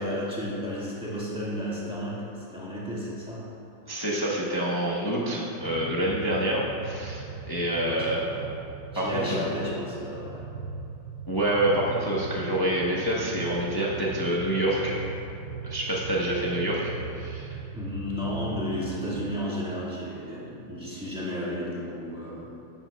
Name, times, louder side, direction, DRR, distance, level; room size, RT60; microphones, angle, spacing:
voice 1, 0.0-3.4 7.8-8.1 8.9-10.4 17.7-22.5, left 1 dB, 5° right, -8 dB, 1.5 m, -33 dB
voice 2, 3.9-8.5 8.9-9.5 11.3-15.0 15.6-17.6, right 1 dB, 25° left, -5 dB, 0.4 m, -27 dB
sound 1, 5.6-19.4, right 5 dB, 75° right, 1.3 m, -39 dB
13.0 x 9.0 x 2.3 m, 2.9 s
omnidirectional pair, 2.3 m